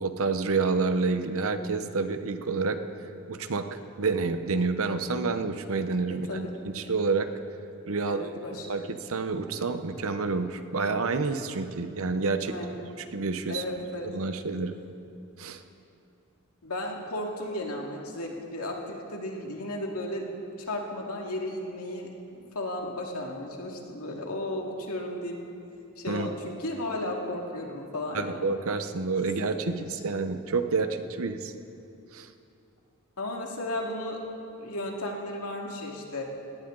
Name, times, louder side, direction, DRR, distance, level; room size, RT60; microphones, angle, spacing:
voice 1, 0.0-2.8 3.3-7.3 7.9-12.5 13.1-13.6 14.1-14.7 15.4-15.6 26.1-26.3 28.1-31.5 32.1-32.3, right 4 dB, 65° right, 9 dB, 0.9 m, -29 dB
voice 2, 6.1-6.5 8.0-8.7 12.5-12.8 13.5-14.1 16.6-20.3 20.6-25.4 26.0-28.5 29.6-29.9 33.2-34.2 34.6-36.2, left 1 dB, 80° left, 0 dB, 2.3 m, -34 dB
20.0 x 17.5 x 3.9 m, 2.7 s
head